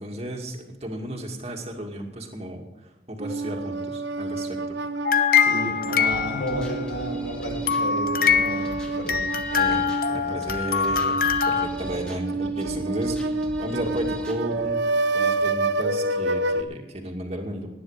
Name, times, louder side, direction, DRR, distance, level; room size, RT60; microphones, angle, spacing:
voice 1, 0.0-2.7 3.1-4.8 9.5-13.2 13.6-14.8 15.1-17.7, right 1 dB, 35° right, 2 dB, 2.3 m, -33 dB
sound 1, 3.2-16.6, right 2 dB, 75° right, 0.8 m, -29 dB
sound 2, 5.0-6.8 7.7-11.7, left 7 dB, 50° left, 0.8 m, -23 dB
voice 2, 5.4-9.3, equal, 85° left, 0 dB, 6.1 m, -32 dB
sound 3, 6.1-14.7, equal, 5° left, 2.0 m, -41 dB
19.0 x 10.0 x 5.1 m, 1.1 s
head